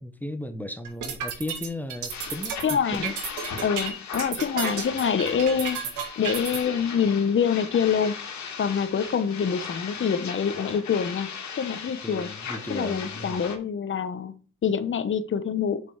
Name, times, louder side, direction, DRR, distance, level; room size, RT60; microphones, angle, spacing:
voice 1, 0.0-3.1 12.0-13.4, left 1 dB, 5° left, 0.9 m, -36 dB
sound 1, 0.8-6.6, right 7 dB, 80° right, 2.1 m, -32 dB
sound 2, 2.1-13.6, left 6 dB, 70° left, 2.1 m, -37 dB
voice 2, 2.6-3.1 3.6-8.2 8.6-11.3 11.6-12.3 12.7-15.8, left 7 dB, 40° left, 1.0 m, -26 dB
7.1 x 5.3 x 4.7 m
cardioid pair, 90°, 30 cm